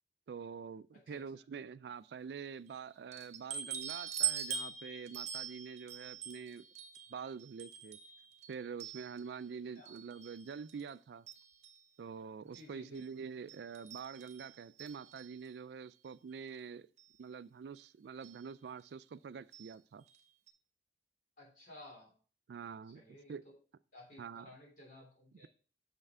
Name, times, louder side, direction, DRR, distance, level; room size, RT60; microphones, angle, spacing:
voice 1, 0.3-6.7 7.1-8.0 8.5-11.3 12.0-16.9 17.2-20.0 22.5-23.5 24.2-24.5 25.3-25.5, right 6 dB, 70° right, 0.3 m, -46 dB
sound 1, 3.1-9.5 9.9-10.9 11.3-11.8 12.5-12.6 13.0-13.1 13.5-15.5 16.5-16.6 17.0-17.1 18.2-18.4 19.5-19.7 20.1-20.2 20.5-20.6, right 8 dB, 40° right, 0.8 m, -43 dB
voice 2, 12.5-13.0 21.4-22.1 22.9-23.6 23.9-25.5, left 1 dB, 50° left, 3.3 m, -55 dB
6.5 x 5.5 x 3.6 m
head